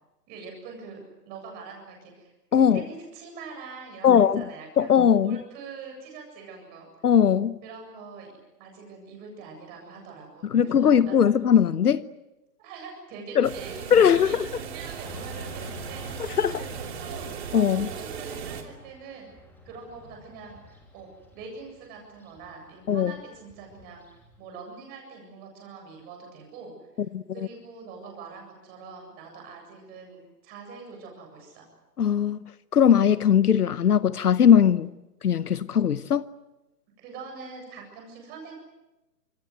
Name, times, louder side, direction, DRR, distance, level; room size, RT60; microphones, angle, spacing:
voice 1, 0.3-1.0 1.2-4.9 5.2-6.9 7.6-8.3 8.6-11.3 12.6-19.3 19.6-24.1 24.4-26.7 27.3-31.7 37.0-38.5, right 4 dB, 20° right, 7.7 m, -44 dB
voice 2, 2.5-2.8 4.0-4.4 4.8-5.4 7.0-7.6 10.5-12.0 13.3-13.5 13.9-14.5 16.4-16.5 17.5-17.9 22.9-23.1 27.1-27.2 32.0-32.4 32.7-34.9 35.2-36.2, left 8 dB, 65° left, 1.0 m, -19 dB
sound 1, 13.4-18.6, right 7 dB, 40° right, 3.4 m, -37 dB
Motorcycle / Traffic noise roadway noise, 15.0-24.4, left 3 dB, 5° left, 2.8 m, -49 dB
27.0 x 24.0 x 7.9 m
hypercardioid pair, 155°, 48 cm